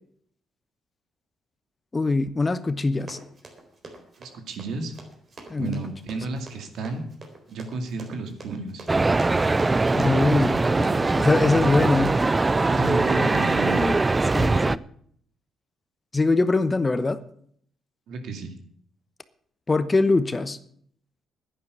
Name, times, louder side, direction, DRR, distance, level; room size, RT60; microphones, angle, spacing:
voice 1, 1.9-3.2 5.5-5.8 9.9-10.5 10.8-12.1 13.7-14.0 14.3-14.8 16.1-17.2 19.7-20.6, left 3 dB, 25° left, 13 dB, 1.0 m, -22 dB
Run, 3.0-13.7, right 3 dB, 45° right, 3.9 m, -44 dB
voice 2, 4.2-4.9 5.6-7.0 7.5-8.9 12.6-13.9 18.1-18.5, right 3 dB, 75° right, 6 dB, 2.3 m, -32 dB
sound 1, 8.9-14.8, right 3 dB, 20° right, 0.4 m, -21 dB
10.5 x 10.0 x 8.3 m, 0.63 s
cardioid pair, 90°, 0 cm